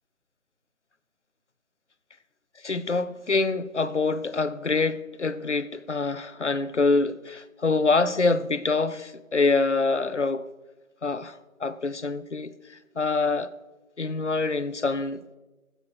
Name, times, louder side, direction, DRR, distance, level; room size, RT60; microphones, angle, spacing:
voice 1, 2.6-10.5 11.0-13.5 14.0-15.4, left 3 dB, 55° left, 0.6 m, -26 dB
14.0 x 7.6 x 4.8 m
figure-of-eight pair, 165°, 43 cm